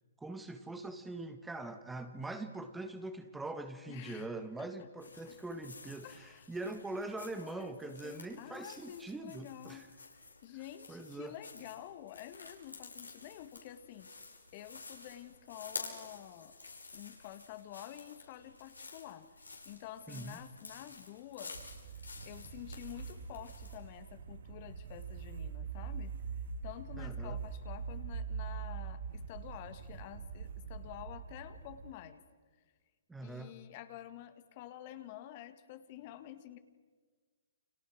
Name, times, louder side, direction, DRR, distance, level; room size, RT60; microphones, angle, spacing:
voice 1, 0.2-9.9 10.9-11.3 20.1-20.4 27.0-27.4 33.1-33.6, right 2 dB, 5° right, 8 dB, 1.6 m, -43 dB
voice 2, 3.9-4.3 4.6-4.9 5.3-5.4 6.0-6.5 7.4-14.1 14.5-16.5 16.9-21.6 22.3-26.1 26.6-32.2 33.2-36.6, left 12 dB, 40° left, 10 dB, 1.9 m, -49 dB
sound 1, 5.0-23.8, left 3 dB, 90° left, 5.5 m, -51 dB
sound 2, 21.5-31.9, right 6 dB, 60° right, 1.6 m, -43 dB
30.0 x 28.0 x 6.4 m, 1.5 s
figure-of-eight pair, 125°, 0 cm